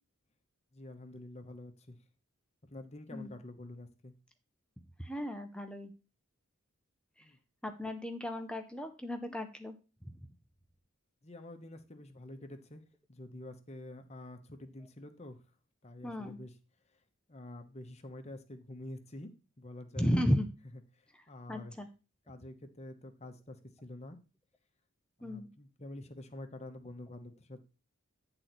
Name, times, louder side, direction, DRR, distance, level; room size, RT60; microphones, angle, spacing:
voice 1, 0.7-2.0 2.7-4.1 7.2-7.4 11.2-12.8 13.1-15.4 15.8-16.5 17.3-20.1 21.3-21.8 22.3-24.2 25.2-27.6, left 1 dB, 30° left, 6 dB, 1.0 m, -47 dB
voice 2, 5.0-5.9 7.6-9.8 16.0-16.4 20.0-20.5 21.5-21.9 25.2-25.5, equal, 5° left, 6 dB, 0.7 m, -34 dB
9.7 x 3.9 x 6.0 m, 0.32 s
head